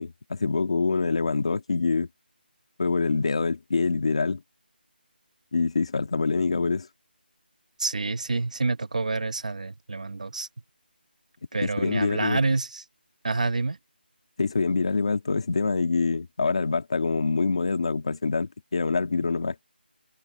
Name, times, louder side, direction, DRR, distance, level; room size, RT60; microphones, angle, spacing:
voice 1, 0.0-2.1 2.8-4.4 5.5-6.9 11.6-12.4 14.4-19.6, left 4 dB, 35° left, 1.8 m, -25 dB
voice 2, 7.8-10.5 11.5-12.8 13.2-13.8, right 3 dB, 45° right, 1.0 m, -27 dB
figure-of-eight pair, 175°, 6 cm